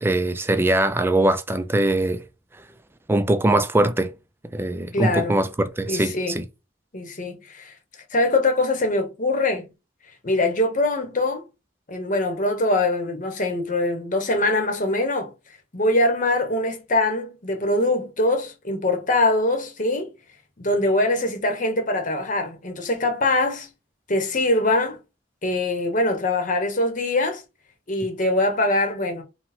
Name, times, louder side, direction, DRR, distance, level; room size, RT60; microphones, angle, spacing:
voice 1, 0.0-2.2 3.1-4.1 4.5-6.5, right 1 dB, 15° right, 0.4 m, -21 dB
voice 2, 4.9-5.4 5.9-6.4 6.9-7.7 8.1-9.7 10.2-11.5 11.9-15.3 15.7-20.1 20.6-23.7 24.1-25.0 25.4-27.4 27.9-29.2, left 2 dB, 45° left, 1.0 m, -23 dB
4.0 x 2.2 x 4.3 m
head